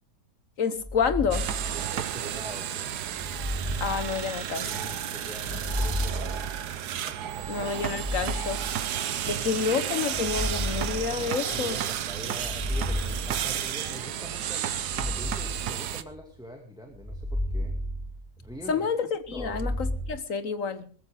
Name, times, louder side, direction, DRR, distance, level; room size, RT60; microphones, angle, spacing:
voice 1, 0.6-1.5 3.8-4.7 7.5-8.6 9.3-11.8 18.7-20.9, left 6 dB, 60° left, 1.4 m, -29 dB
sound 1, 0.8-2.3 3.1-4.8 5.4-7.1 7.8-9.3 10.0-11.8 12.3-13.9 14.7-16.4 16.9-18.7 19.2-20.1, equal, 20° left, 6.6 m, -33 dB
sound 2, 1.3-16.0, right 10 dB, 90° right, 1.5 m, -32 dB
voice 2, 1.9-3.0 4.5-6.4 6.7-6.8 7.1-7.2 9.3-9.4 11.2-17.8 18.4-18.9 19.3-19.7, equal, 5° right, 2.2 m, -44 dB
20.5 x 14.0 x 3.8 m
omnidirectional pair, 1.7 m